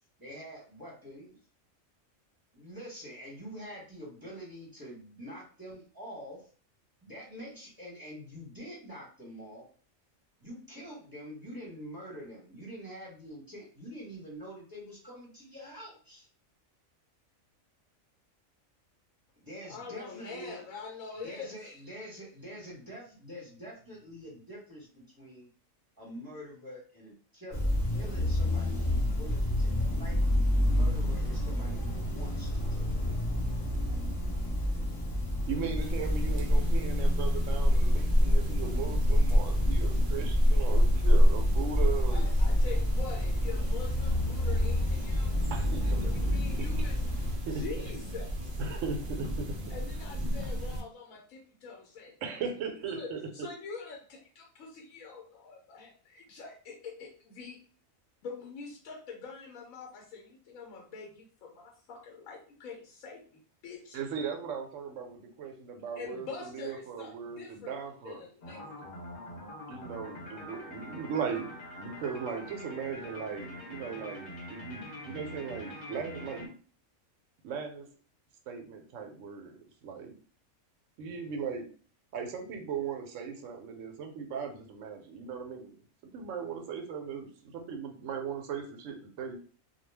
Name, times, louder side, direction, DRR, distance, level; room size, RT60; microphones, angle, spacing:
voice 1, 0.2-1.4 2.5-6.5 7.0-9.6 10.4-16.3 19.4-20.6 21.1-25.5 26.0-30.2 30.6-33.2, equal, 20° right, -5 dB, 0.9 m, -46 dB
voice 2, 19.6-21.5 42.1-45.4 46.0-47.0 47.5-48.6 49.7-52.1 52.8-57.6 58.2-64.0 66.0-67.7 68.0-68.7, left 5 dB, 80° left, 0 dB, 1.0 m, -44 dB
sound 1, 27.5-47.3, left 1 dB, 25° left, 0.5 m, -30 dB
voice 3, 35.5-42.3 45.5-46.7 47.5-47.6 48.6-49.5 52.2-53.5 63.9-68.2 69.7-76.5 77.4-77.9 78.5-80.1 81.0-81.7 82.1-89.4, right 6 dB, 75° right, 4 dB, 0.9 m, -38 dB
sound 2, 35.8-50.8, equal, 50° right, 0.6 m, -28 dB
sound 3, 68.4-76.5, left 1 dB, 45° left, 0.8 m, -44 dB
2.3 x 2.2 x 3.2 m, 0.42 s
omnidirectional pair, 1.4 m